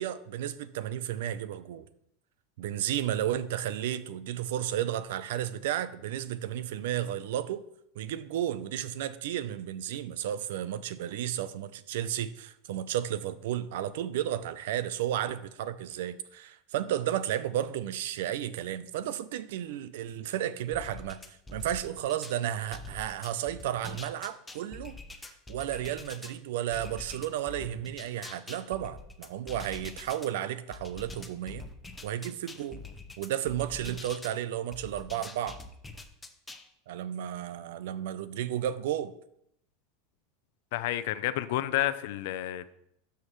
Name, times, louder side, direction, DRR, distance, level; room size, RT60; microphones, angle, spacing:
voice 1, 0.0-1.8 2.6-7.6 8.0-25.0 25.5-31.6 32.0-32.8 33.2-35.6 36.9-39.1, right 11 dB, 75° right, 0.5 m, -33 dB
sound 1, 20.7-22.4 22.7-26.3 26.7-30.3 30.7-34.4 34.7-36.7, left 3 dB, 10° left, 0.9 m, -45 dB
voice 2, 40.7-42.7, left 14 dB, 70° left, 0.6 m, -30 dB
12.5 x 5.8 x 3.2 m
supercardioid pair, 120°, 0 cm